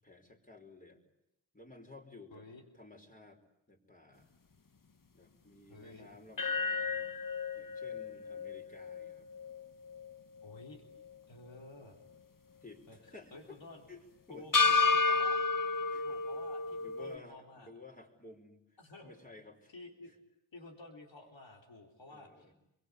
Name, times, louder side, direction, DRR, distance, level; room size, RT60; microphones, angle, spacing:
voice 1, 0.0-1.0 1.5-2.5 2.7-3.4 3.7-4.3 5.1-7.1 7.6-9.3 12.6-13.6 13.9-14.6 15.1-15.2 15.9-16.1 16.8-19.7 20.0-20.1 22.1-22.5, left 3 dB, 20° left, 1 dB, 5.2 m, -54 dB
voice 2, 2.3-2.6 5.7-6.1 10.4-10.8 11.3-12.0 12.9-13.0 13.3-13.8 14.3-15.4 16.0-17.7 18.8-19.1 19.7-20.1 20.5-22.5, left 2 dB, 90° left, 2 dB, 4.0 m, -52 dB
sound 1, 6.4-10.6 11.0-11.1 14.5-17.2, left 4 dB, 50° left, 1.2 m, -32 dB
29.5 x 23.0 x 8.4 m, 0.84 s
wide cardioid pair, 70°, 43 cm